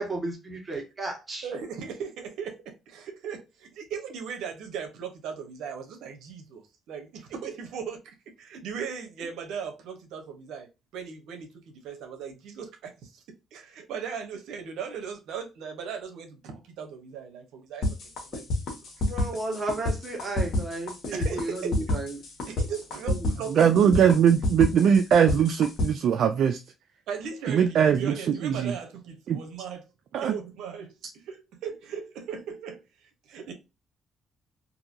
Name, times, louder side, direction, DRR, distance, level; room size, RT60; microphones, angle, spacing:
voice 1, 0.0-1.5 19.1-22.1 23.2-23.3, right 2 dB, 25° right, 1.3 m, -33 dB
voice 2, 1.4-10.7 10.9-13.2 13.5-19.0 19.3-19.4 21.1-22.0 22.5-24.1 27.1-29.8 30.2-33.5, right 6 dB, 85° right, 0.7 m, -38 dB
sound 1, 17.8-25.9, left 2 dB, 70° left, 1.2 m, -28 dB
voice 3, 23.5-26.6 27.5-28.1 28.4-28.7 29.3-29.4 30.1-30.3, right 8 dB, 70° right, 0.3 m, -21 dB
2.8 x 2.6 x 2.5 m
cardioid pair, 90°, 0 cm